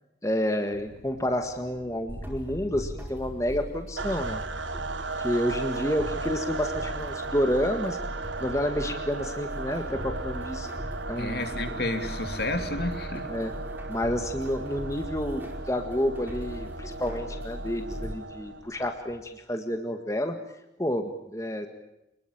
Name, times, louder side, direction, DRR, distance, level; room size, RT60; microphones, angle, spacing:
voice 1, 0.2-4.4 5.2-8.0 8.4-10.7 11.1-11.4 13.3-13.5 13.9-20.3 20.8-21.7, equal, 15° left, 6 dB, 1.8 m, -29 dB
sound 1, 0.7-19.2, left 1 dB, 50° right, 4.7 m, -53 dB
sound 2, 2.1-18.1, equal, 10° right, 5.0 m, -39 dB
sound 3, 4.0-18.7, right 3 dB, 90° right, 1.4 m, -36 dB
voice 2, 11.2-13.3, left 2 dB, 55° left, 7 dB, 3.0 m, -31 dB
27.5 x 21.0 x 8.9 m, 0.87 s
head